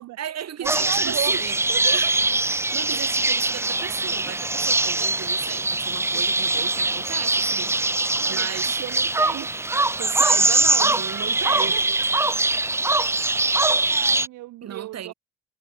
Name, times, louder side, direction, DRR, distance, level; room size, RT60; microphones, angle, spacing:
voice 1, 0.0-1.6 1.9-2.1 2.4-7.7 8.3-8.8 10.0-11.8 14.6-15.1, right 9 dB, 55° right, 2.7 m, -35 dB
sound 1, 0.6-14.3, right 2 dB, 10° right, 0.4 m, -22 dB
voice 2, 0.6-1.4 1.7-2.2 8.1-8.5 8.8-9.7 10.8-10.9 11.2-12.0 12.6-12.8 13.9-15.1, right 18 dB, 85° right, 0.7 m, -36 dB
cardioid pair, 90°, 30 cm